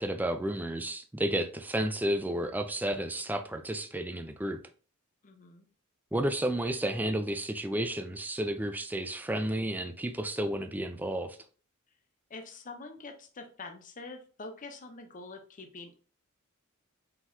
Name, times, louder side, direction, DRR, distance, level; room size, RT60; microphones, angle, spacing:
voice 1, 0.0-4.6 6.1-11.4, right 1 dB, 10° right, 0.4 m, -32 dB
voice 2, 5.2-5.7 12.3-16.1, left 3 dB, 40° left, 0.7 m, -45 dB
4.5 x 3.8 x 2.6 m
head